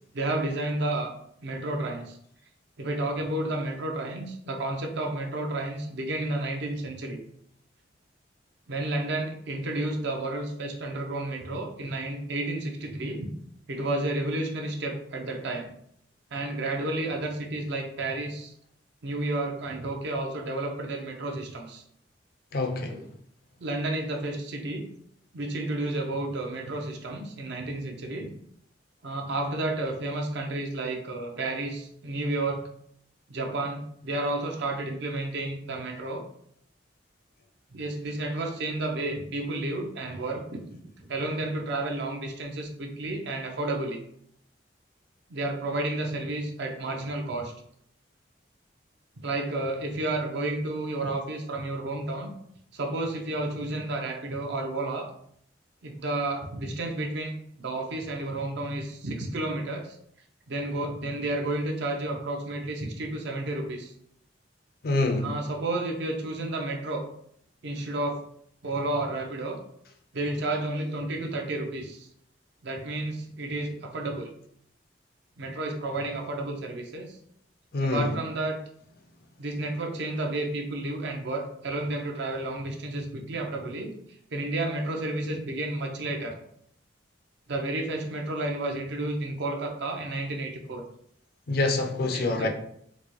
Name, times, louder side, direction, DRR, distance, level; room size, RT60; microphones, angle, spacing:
voice 1, 0.1-1.1 1.4-2.2 2.8-7.2 8.7-13.3 13.7-15.7 16.3-18.5 19.0-21.8 22.9-23.1 23.6-24.9 25.3-28.3 29.0-32.7 33.3-36.2 37.7-40.6 41.0-44.0 45.3-47.5 49.2-52.3 52.7-55.1 55.8-60.0 60.5-63.9 65.2-67.1 67.6-68.2 68.6-69.6 70.1-72.1 72.6-74.3 75.4-77.2 77.8-78.6 79.4-84.0 84.3-86.4 87.5-90.8 92.1-92.5, right 2 dB, 65° right, 2 dB, 0.6 m, -31 dB
voice 2, 22.5-23.0 64.8-65.3 77.7-78.1 91.5-92.5, left 2 dB, 55° left, 4 dB, 0.5 m, -26 dB
3.9 x 2.2 x 3.0 m, 0.68 s
head